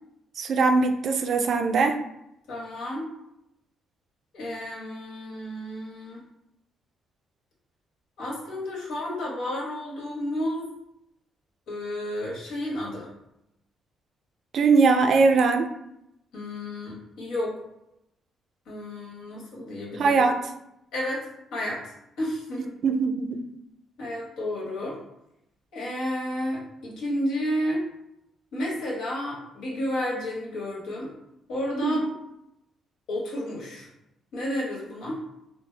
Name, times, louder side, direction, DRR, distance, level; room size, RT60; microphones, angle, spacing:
voice 1, 0.4-2.0 14.5-15.7 20.0-20.4 22.8-23.4 31.8-31.9, right 4 dB, 60° right, 6 dB, 0.3 m, -21 dB
voice 2, 2.5-3.1 4.3-6.2 8.2-10.6 11.7-13.1 16.3-17.6 18.7-20.3 20.9-22.7 24.0-25.0 25.7-27.8 28.5-31.1 31.5-32.0 33.1-33.9 34.3-35.2, left 1 dB, 85° left, -4 dB, 1.2 m, -31 dB
3.4 x 2.0 x 3.2 m, 0.82 s
cardioid pair, 90°, 0 cm